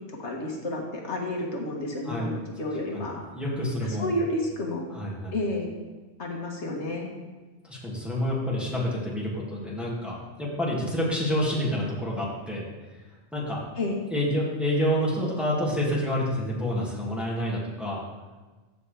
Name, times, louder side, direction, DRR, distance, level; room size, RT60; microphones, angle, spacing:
voice 1, 0.1-3.2 3.8-4.9 5.3-5.7 6.2-7.1 13.8-14.0, left 1 dB, 75° left, 0 dB, 1.7 m, -31 dB
voice 2, 3.3-4.1 4.9-5.3 7.6-12.6 13.3-13.6 14.1-18.0, equal, ahead, -6 dB, 2.2 m, -28 dB
14.5 x 6.0 x 3.4 m, 1.3 s
omnidirectional pair, 1.2 m